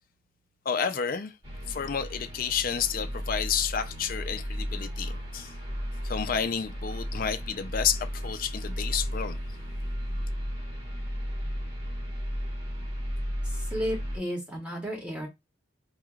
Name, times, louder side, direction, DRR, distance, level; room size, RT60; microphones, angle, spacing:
voice 1, 0.7-1.3 1.7-5.5 6.0-9.4, left 7 dB, 50° left, 0.5 m, -30 dB
sound 1, 1.4-14.2, equal, 30° right, 2.2 m, -34 dB
voice 2, 13.4-15.3, equal, 5° right, 1.6 m, -33 dB
4.6 x 3.2 x 2.4 m
head